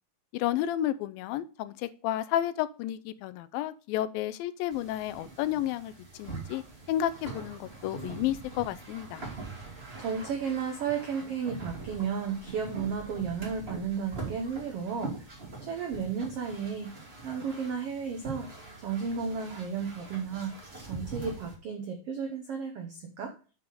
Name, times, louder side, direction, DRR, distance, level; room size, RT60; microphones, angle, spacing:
voice 1, 0.3-6.6 6.9-9.3, left 12 dB, 85° left, 2.3 m, -31 dB
sound 1, 4.7-21.6, right 3 dB, 25° right, 1.4 m, -43 dB
voice 2, 9.6-16.9 17.2-18.5 18.8-20.5 20.9-23.3, right 6 dB, 80° right, 1.3 m, -33 dB
6.8 x 5.8 x 5.5 m
omnidirectional pair, 4.1 m